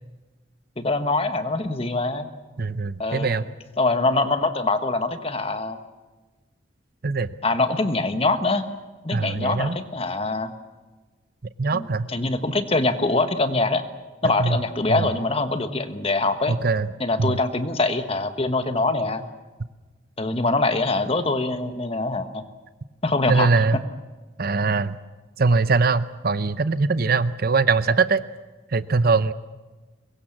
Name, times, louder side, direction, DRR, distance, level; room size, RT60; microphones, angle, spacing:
voice 1, 0.8-2.3 3.0-3.4 3.8-5.8 7.4-8.6 9.0-10.5 11.7-13.8 14.2-16.6 17.0-19.2 20.2-22.4 23.0-23.5, left 2 dB, 30° left, 9 dB, 1.3 m, -24 dB
voice 2, 2.6-3.4 7.0-7.3 9.1-9.8 11.6-12.1 14.4-14.6 14.9-15.1 16.5-16.9 17.2-17.4 23.3-23.8 24.4-25.0 25.4-28.2 28.7-29.3, right 4 dB, 50° right, 14 dB, 0.7 m, -22 dB
24.0 x 22.0 x 7.4 m, 1.2 s
head